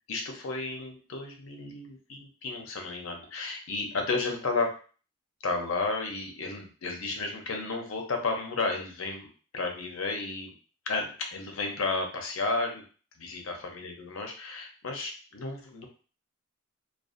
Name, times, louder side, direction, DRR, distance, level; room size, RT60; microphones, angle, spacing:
voice 1, 0.1-4.8 5.4-10.5 10.9-12.8 13.2-15.9, left 3 dB, 80° left, 3 dB, 0.6 m, -33 dB
2.4 x 2.3 x 2.4 m, 0.38 s
head